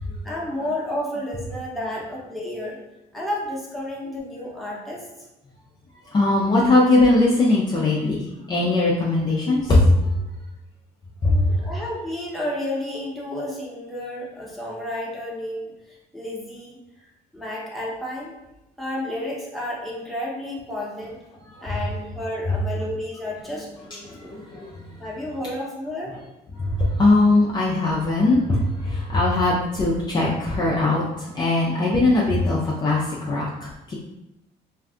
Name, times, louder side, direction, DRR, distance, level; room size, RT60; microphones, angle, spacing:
voice 1, 0.2-2.8 3.1-5.1 11.3-18.3 18.8-21.2 21.6-24.4 25.0-26.2, left 1 dB, ahead, -5 dB, 0.9 m, -31 dB
voice 2, 6.0-10.2 11.2-11.7 21.5-21.7 22.5-22.6 24.0-25.0 26.6-33.9, left 2 dB, 25° left, -5 dB, 0.5 m, -20 dB
2.6 x 2.3 x 3.5 m, 0.93 s
cardioid pair, 110°, 17 cm